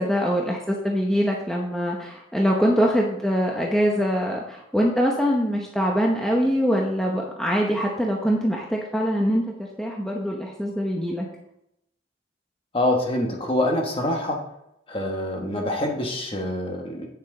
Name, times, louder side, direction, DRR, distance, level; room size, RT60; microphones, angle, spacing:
voice 1, 0.0-9.5 9.8-11.3, equal, 5° left, -1 dB, 0.8 m, -23 dB
voice 2, 12.7-14.4 14.9-17.1, left 1 dB, 30° left, 1 dB, 1.3 m, -25 dB
8.6 x 7.2 x 3.9 m, 0.80 s
head